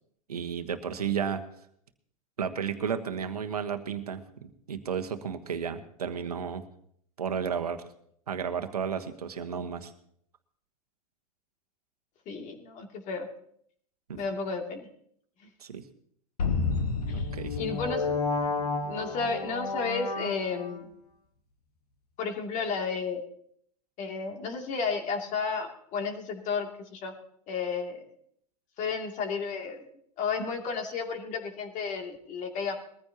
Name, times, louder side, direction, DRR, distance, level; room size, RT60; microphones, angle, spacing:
voice 1, 0.3-1.4 2.4-6.6 7.2-7.8 8.3-9.9 14.1-14.2 15.6-15.8 17.1-17.6, right 7 dB, 85° right, 7 dB, 1.3 m, -33 dB
voice 2, 12.3-13.3 14.2-14.9 15.4-15.5 17.1-17.3 17.6-18.1 18.8-20.9 22.2-23.2 24.0-27.1 27.5-28.0 28.8-29.8 30.2-32.7, left 5 dB, 40° left, 3 dB, 2.6 m, -32 dB
sound 1, 16.4-20.8, left 4 dB, 85° left, 1.7 m, -30 dB
21.5 x 14.5 x 2.9 m, 0.66 s
hypercardioid pair, 100°, 19 cm